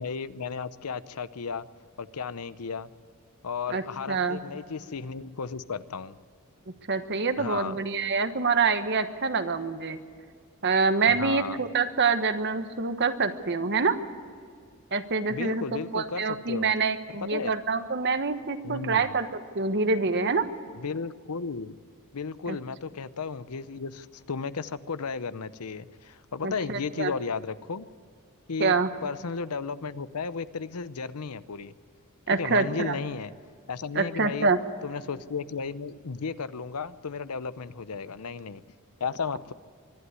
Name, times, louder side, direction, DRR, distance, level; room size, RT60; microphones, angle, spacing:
voice 1, 0.0-1.7 2.0-2.9 3.4-6.2 7.4-7.8 11.1-11.6 15.3-16.7 17.2-17.5 18.6-19.2 20.7-21.8 22.1-27.9 28.5-28.7 29.0-31.7 32.3-33.3 33.7-34.5 34.8-38.6 39.0-39.5, left 5 dB, 85° left, 15 dB, 0.7 m, -34 dB
voice 2, 3.7-4.4 6.9-10.0 10.6-14.0 14.9-20.5 22.5-22.6 26.4-27.1 28.6-28.9 32.3-33.0 33.9-34.6, right 4 dB, 50° right, 9 dB, 1.2 m, -26 dB
25.0 x 11.5 x 9.7 m, 2.2 s
head